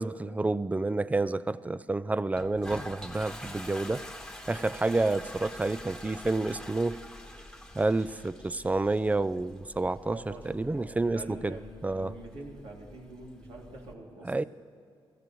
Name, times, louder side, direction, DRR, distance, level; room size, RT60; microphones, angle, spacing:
voice 1, 0.0-4.0 4.5-7.0 7.7-10.2 10.5-11.6 11.8-12.1 14.2-14.4, right 2 dB, 15° right, 0.4 m, -29 dB
Toilet flush, 2.3-13.9, left 1 dB, 5° left, 1.3 m, -46 dB
voice 2, 10.1-14.5, right 2 dB, 85° right, 2.8 m, -45 dB
21.5 x 14.5 x 3.1 m
cardioid pair, 80°, 10 cm